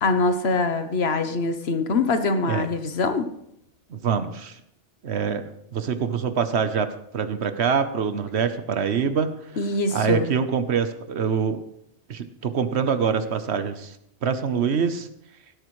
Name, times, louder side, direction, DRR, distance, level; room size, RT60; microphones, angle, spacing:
voice 1, 0.0-3.3 9.6-10.3, left 3 dB, 60° left, 9 dB, 1.2 m, -23 dB
voice 2, 3.9-4.6 5.0-9.4 9.9-11.6 12.1-14.0 14.2-15.1, right 6 dB, 65° right, 10 dB, 1.1 m, -25 dB
16.5 x 12.5 x 3.2 m, 0.76 s
omnidirectional pair, 1.2 m